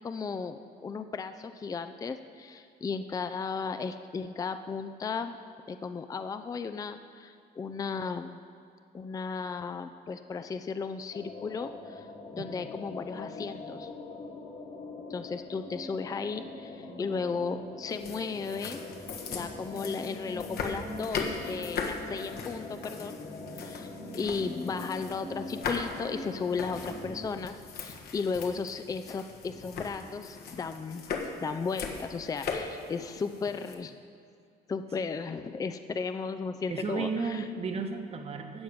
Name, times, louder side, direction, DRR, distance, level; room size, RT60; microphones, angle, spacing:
voice 1, 0.0-5.4 5.7-8.4 8.9-13.9 15.1-18.8 19.3-23.2 23.6-23.9 24.1-31.0 31.4-33.9 34.7-37.4, left 5 dB, 20° left, 9 dB, 0.4 m, -35 dB
sound 1, 11.1-27.3, left 2 dB, 50° left, 1.9 m, -42 dB
voice 2, 12.4-12.7 36.7-38.6, right 4 dB, 35° right, 5 dB, 1.1 m, -34 dB
sound 2, 17.9-33.7, left 5 dB, 65° left, 1.4 m, -39 dB
13.5 x 4.8 x 8.6 m, 2.4 s
cardioid pair, 110°, 17 cm